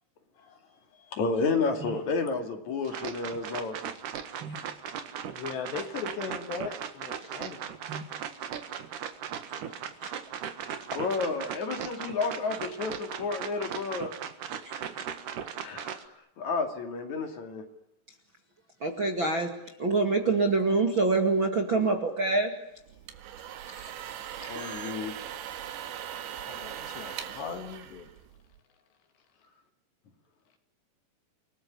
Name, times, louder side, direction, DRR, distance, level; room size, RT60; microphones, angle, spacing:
voice 1, 0.4-1.2 1.9-2.0 5.3-7.7 26.5-28.1, left 6 dB, 75° left, 4.6 m, -39 dB
voice 2, 1.1-3.8 10.9-14.2 15.6-15.9 16.4-17.6 24.5-25.2, left 4 dB, 45° left, 3.3 m, -31 dB
sound 1, 2.9-16.1, right 8 dB, 60° right, 2.6 m, -38 dB
voice 3, 18.8-19.5 19.8-22.5, right 3 dB, 35° right, 2.1 m, -26 dB
sound 2, 22.9-28.6, right 10 dB, 85° right, 4.0 m, -40 dB
30.0 x 19.5 x 10.0 m
omnidirectional pair, 5.1 m